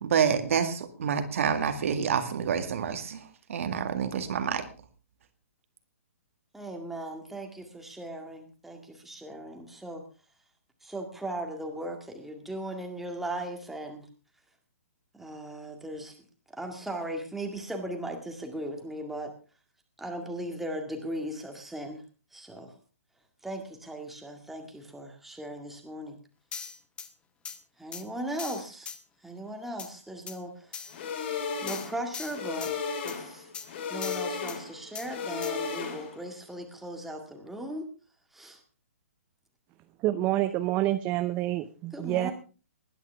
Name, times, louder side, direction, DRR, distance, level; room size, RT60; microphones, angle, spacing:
voice 1, 0.0-3.2 3.5-4.6, right 7 dB, 60° right, 8 dB, 2.1 m, -27 dB
voice 2, 6.5-10.0 10.8-14.1 15.2-16.2 16.5-19.3 20.0-22.0 22.3-22.7 23.4-26.2 27.8-28.9 29.2-30.8 31.6-32.8 33.0-33.5 33.9-37.9 38.3-38.6 41.9-42.3, right 1 dB, 5° right, 3 dB, 2.1 m, -38 dB
sound 1, 26.5-27.1 27.4-27.6 27.9-28.0 28.4-29.0 29.8-29.9 30.3-30.4 30.7-31.0 31.7-32.7 33.1-33.2 33.5-33.7 34.0-34.6 34.9-35.1 35.4-35.5, left 7 dB, 15° left, 1.0 m, -39 dB
sound 2, 30.9-36.3, left 6 dB, 45° left, 3.3 m, -35 dB
voice 3, 40.0-42.3, right 15 dB, 20° right, 10 dB, 0.7 m, -27 dB
20.5 x 10.0 x 3.5 m, 0.35 s
hypercardioid pair, 150°, 8 cm